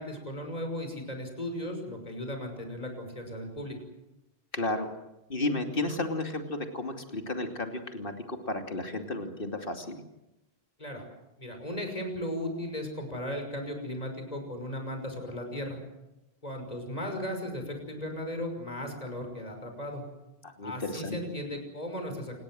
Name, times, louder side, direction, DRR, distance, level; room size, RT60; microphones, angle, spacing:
voice 1, 0.0-3.8 10.8-11.1 11.4-15.8 16.4-20.0 20.6-22.4, left 1 dB, 40° left, 5 dB, 6.1 m, -36 dB
voice 2, 4.5-4.9 5.3-10.0 20.4-21.2, left 2 dB, 60° left, 5 dB, 3.0 m, -33 dB
28.5 x 20.5 x 7.8 m, 0.93 s
omnidirectional pair, 1.1 m